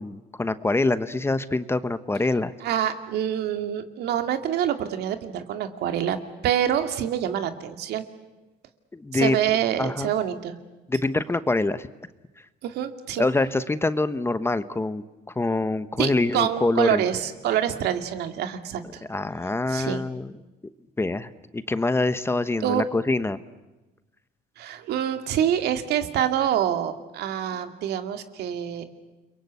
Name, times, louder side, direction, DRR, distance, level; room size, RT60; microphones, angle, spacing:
voice 1, 0.0-2.5 8.9-9.4 9.8-10.1 10.9-11.9 13.2-15.0 15.4-17.0 19.1-20.3 21.0-23.4, left 2 dB, 15° left, 13 dB, 1.1 m, -25 dB
voice 2, 2.6-6.2 6.4-8.0 9.1-10.5 12.6-13.2 16.0-19.0 19.7-20.0 22.6-22.8 24.6-28.8, right 10 dB, 75° right, 7 dB, 2.4 m, -26 dB
30.0 x 23.0 x 8.2 m, 1.1 s
cardioid pair, 110°, 17 cm